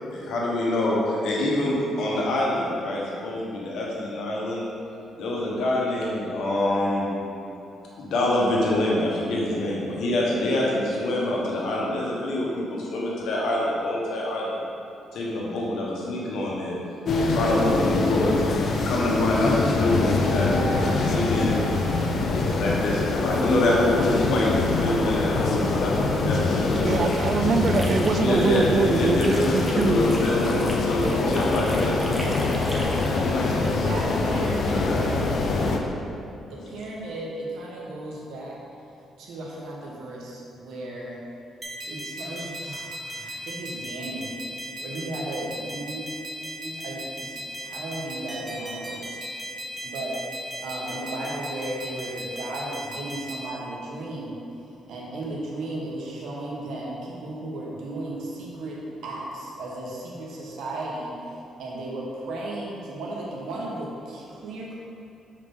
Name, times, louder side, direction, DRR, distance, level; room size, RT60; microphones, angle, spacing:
voice 1, 0.1-4.7 5.2-7.1 8.0-14.6 15.1-16.8 17.1-18.4 18.8-21.6 22.3-27.1 28.2-32.2 33.0-33.6 34.8-34.9, left 1 dB, 75° left, -4 dB, 1.4 m, -26 dB
sound 1, 17.0-35.8, left 3 dB, 55° left, 0.6 m, -24 dB
sound 2, 26.5-28.7 29.0-33.2, equal, 5° right, 1.1 m, -39 dB
voice 2, 26.8-30.0, right 5 dB, 50° right, 8 dB, 0.4 m, -24 dB
voice 3, 33.4-35.3 36.4-38.6 39.2-41.2 41.9-46.0 46.4-49.2 49.8-54.3 54.7-64.7, right 1 dB, 80° right, -3 dB, 1.3 m, -35 dB
sound 3, 41.6-53.5, equal, 20° right, 1.3 m, -37 dB
6.8 x 4.9 x 3.8 m, 2.7 s
cardioid pair, 90°, 0 cm